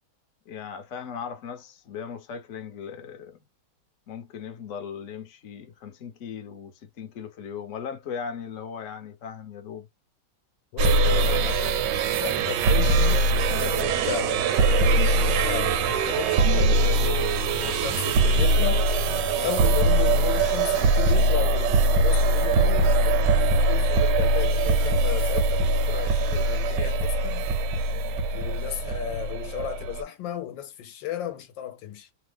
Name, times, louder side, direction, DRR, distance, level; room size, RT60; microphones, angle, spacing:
voice 1, 0.5-3.4 4.1-9.9, left 7 dB, 60° left, 0.9 m, -38 dB
voice 2, 10.7-11.8 12.2-14.5 14.8-18.8 19.4-23.3 23.6-27.4 28.3-32.1, left 11 dB, 75° left, 1.3 m, -34 dB
sound 1, 10.8-30.0, right 2 dB, 75° right, 1.1 m, -22 dB
3.2 x 2.0 x 3.3 m
omnidirectional pair, 2.1 m